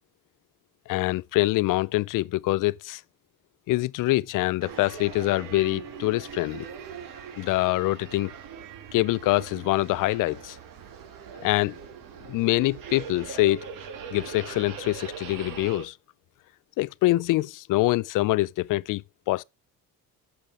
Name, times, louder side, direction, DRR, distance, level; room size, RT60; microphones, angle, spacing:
voice 1, 0.9-3.0 3.7-6.7 7.4-8.3 8.9-10.6 11.4-11.7 12.3-13.6 14.1-15.9 16.8-19.4, left 18 dB, 60° left, 0.4 m, -25 dB
sound 1, 4.6-15.9, right 7 dB, 65° right, 2.2 m, -41 dB
9.0 x 7.1 x 4.7 m
cardioid pair, 150°, 36 cm